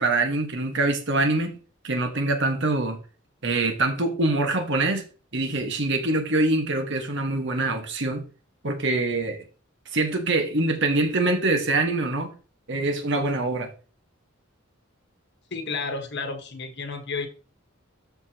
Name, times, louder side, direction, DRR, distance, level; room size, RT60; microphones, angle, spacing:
voice 1, 0.0-1.5 1.8-3.0 3.4-5.1 5.3-8.2 8.6-9.4 9.9-12.3 12.7-13.7, right 2 dB, 60° right, 5 dB, 1.6 m, -24 dB
voice 2, 15.5-17.3, left 4 dB, 60° left, 6 dB, 1.4 m, -31 dB
13.0 x 5.0 x 2.9 m, 0.36 s
head